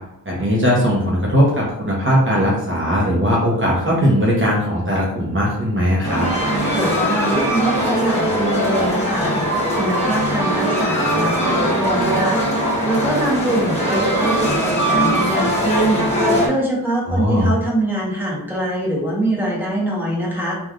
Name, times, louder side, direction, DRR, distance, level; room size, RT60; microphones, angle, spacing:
voice 1, 0.3-6.3 17.0-17.5, equal, 30° right, -5 dB, 0.7 m, -18 dB
sound 1, 6.0-16.5, equal, 15° left, 1.2 m, -20 dB
voice 2, 6.5-9.3 9.7-12.4 12.9-16.1 16.5-20.6, right 1 dB, 5° right, -4 dB, 1.0 m, -23 dB
3.1 x 2.4 x 2.4 m, 0.86 s
wide cardioid pair, 85°, 38 cm